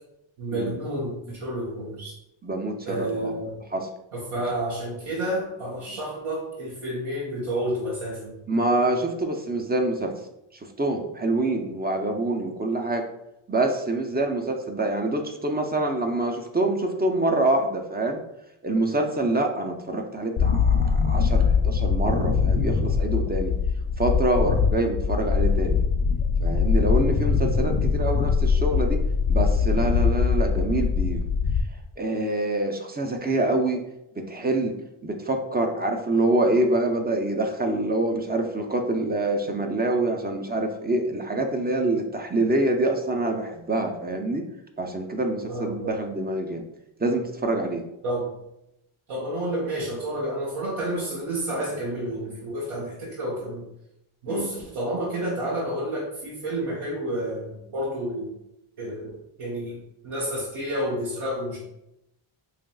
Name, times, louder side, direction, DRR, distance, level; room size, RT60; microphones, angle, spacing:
voice 1, 0.4-2.2 2.9-3.6 4.1-8.3 45.5-46.0 48.0-48.3 49.1-53.6 54.2-58.3 58.8-59.1 59.4-59.8 60.0-61.6, right 1 dB, 80° right, -6 dB, 1.2 m, -30 dB
voice 2, 2.4-3.3 3.7-3.9 8.5-10.1 10.6-13.1 13.5-18.2 18.6-23.5 24.0-25.8 26.4-29.0 29.3-31.2 32.0-33.8 34.2-34.8 35.0-44.5 44.8-46.7 47.0-47.8 54.3-54.5, right 2 dB, 20° right, 3 dB, 0.4 m, -26 dB
sound 1, 20.4-31.6, left 5 dB, 80° left, 0.6 m, -22 dB
4.9 x 3.0 x 2.3 m, 0.84 s
cardioid pair, 90°, 49 cm